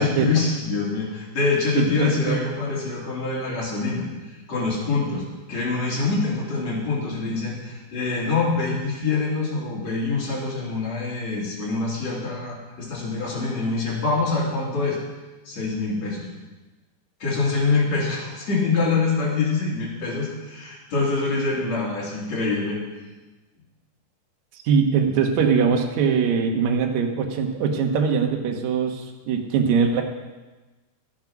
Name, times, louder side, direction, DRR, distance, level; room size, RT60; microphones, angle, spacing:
voice 1, 0.0-4.1 4.5-15.0 15.5-16.3 17.2-22.8, left 3 dB, 40° left, -5 dB, 3.8 m, -25 dB
voice 2, 1.8-2.4 24.6-30.0, right 6 dB, 65° right, 2 dB, 1.8 m, -22 dB
13.5 x 9.4 x 6.0 m, 1.2 s
omnidirectional pair, 5.1 m